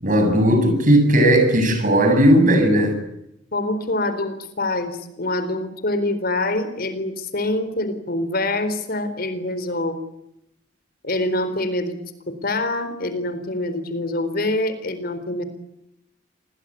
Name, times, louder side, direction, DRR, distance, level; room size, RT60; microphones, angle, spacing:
voice 1, 0.0-3.0, right 1 dB, 45° right, 7 dB, 7.6 m, -16 dB
voice 2, 3.5-10.0 11.0-12.0 12.3-15.4, left 2 dB, 50° left, 11 dB, 4.1 m, -25 dB
27.5 x 20.5 x 9.8 m, 0.82 s
head